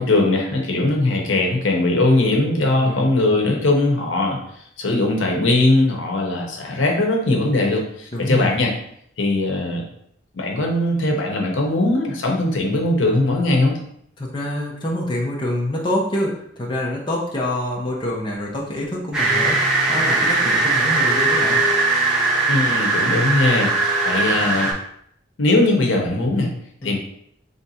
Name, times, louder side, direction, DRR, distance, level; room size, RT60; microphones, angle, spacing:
voice 1, 0.0-4.4 4.8-8.7 9.2-9.8 10.3-13.8 22.5-24.7 25.4-26.5 26.8-27.0, left 2 dB, 85° left, 1 dB, 0.8 m, -20 dB
voice 2, 8.1-8.6 14.2-21.6 26.8-27.0, left 1 dB, 25° left, -3 dB, 0.7 m, -26 dB
sound 1, 19.1-24.7, right 3 dB, ahead, 1.0 m, -19 dB
3.4 x 2.6 x 4.1 m, 0.69 s
head